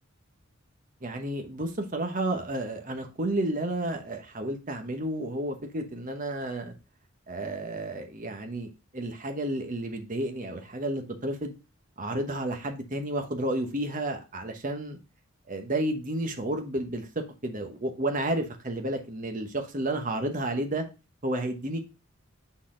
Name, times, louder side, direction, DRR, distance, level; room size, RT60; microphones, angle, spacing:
voice 1, 1.0-6.7 7.3-11.6 12.0-15.0 15.5-17.1 17.4-20.8 21.2-21.8, right 1 dB, 40° right, 5 dB, 1.0 m, -31 dB
6.3 x 4.1 x 3.8 m, 0.29 s
head